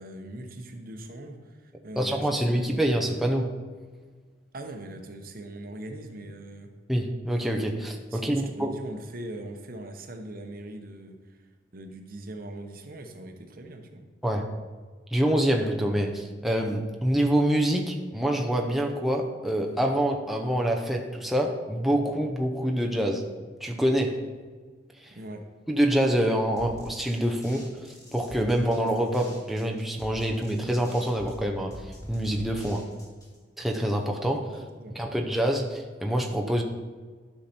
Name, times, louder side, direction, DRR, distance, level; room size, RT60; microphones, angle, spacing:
voice 1, 0.0-2.9 4.5-6.7 8.1-11.4 11.7-14.1 25.1-25.4 34.8-35.1, right 1 dB, 55° right, 5 dB, 0.9 m, -41 dB
voice 2, 2.0-3.5 6.9-8.8 14.2-14.5 15.1-23.2 23.6-24.2 25.0-25.1 25.7-32.9 33.6-34.6 34.9-36.6, right 1 dB, ahead, 1 dB, 0.6 m, -26 dB
sound 1, 26.6-33.4, equal, 20° left, 2.3 m, -45 dB
11.5 x 5.7 x 4.3 m, 1.4 s
head